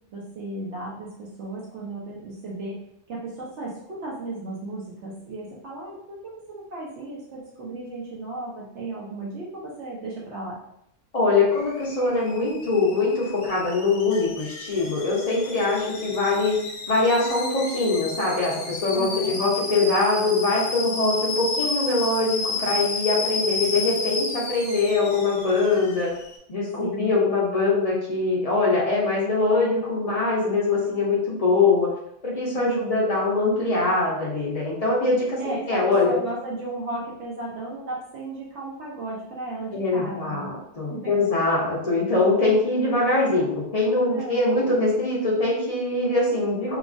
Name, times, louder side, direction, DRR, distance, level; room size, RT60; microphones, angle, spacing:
voice 1, 0.1-2.8 3.1-10.6 18.9-19.4 26.8-27.1 32.5-33.0 35.4-40.5 40.9-41.1 44.1-44.5, right 2 dB, 75° right, -5 dB, 0.9 m, -35 dB
voice 2, 11.1-16.6 16.9-26.1 26.5-31.9 32.2-36.2 39.7-46.8, left 3 dB, 40° left, -5 dB, 0.7 m, -23 dB
Alarm / Boiling, 11.5-26.4, left 3 dB, 85° left, 0.9 m, -32 dB
3.0 x 2.3 x 2.5 m, 0.77 s
omnidirectional pair, 1.2 m